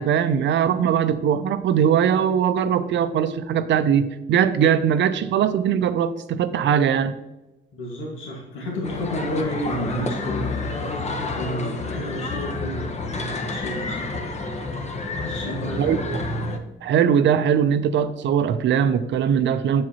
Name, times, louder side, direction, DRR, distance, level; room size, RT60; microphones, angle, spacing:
voice 1, 0.0-7.2 15.8-16.2 16.8-19.8, right 8 dB, 65° right, 0.5 m, -20 dB
voice 2, 7.7-14.3 15.1-16.1, equal, 85° left, 1.7 m, -31 dB
sound 1, 8.8-16.6, left 3 dB, 35° left, 0.9 m, -29 dB
7.5 x 7.1 x 2.8 m
cardioid pair, 90°, 20 cm